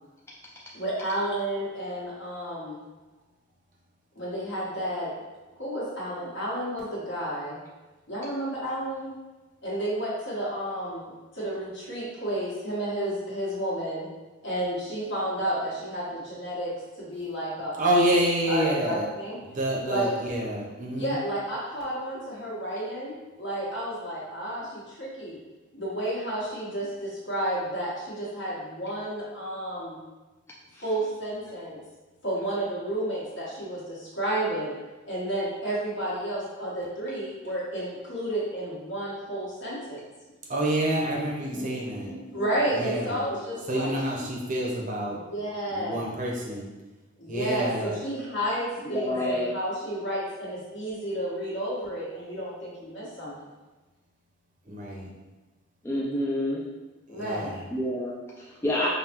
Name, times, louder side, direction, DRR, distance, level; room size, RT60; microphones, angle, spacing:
voice 1, 0.7-2.8 4.1-5.1 5.5-7.6 8.1-9.1 9.6-14.1 14.4-16.7 17.0-18.0 18.5-19.4 19.8-20.2 20.9-25.4 25.7-30.0 30.8-31.8 32.2-34.7 35.1-40.0 41.5-41.7 42.3-43.9 45.3-46.1 47.2-53.3 57.1-57.6, right 1 dB, 60° left, -8 dB, 1.4 m, -31 dB
voice 2, 17.8-19.0 19.4-21.2 40.5-42.1 42.7-43.2 43.7-45.2 45.7-46.7 47.3-48.0 54.7-55.1 57.1-57.6, right 1 dB, 40° right, -2 dB, 0.7 m, -28 dB
voice 3, 41.5-42.9 48.9-49.5 55.8-56.6 57.7-58.9, left 1 dB, 10° left, -5 dB, 0.3 m, -30 dB
5.3 x 2.2 x 2.9 m, 1.2 s
head